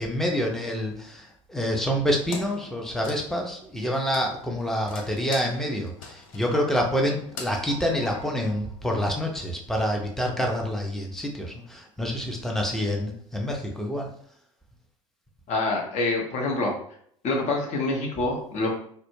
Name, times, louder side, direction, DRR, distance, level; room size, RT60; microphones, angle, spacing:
voice 1, 0.0-14.1, equal, ahead, 0 dB, 0.6 m, -27 dB
Wood, 2.3-9.0, left 3 dB, 75° left, 0.5 m, -43 dB
voice 2, 15.5-16.8 17.2-18.8, left 2 dB, 40° left, 0 dB, 0.8 m, -26 dB
2.1 x 2.0 x 3.0 m, 0.64 s
figure-of-eight pair, 70°, 18 cm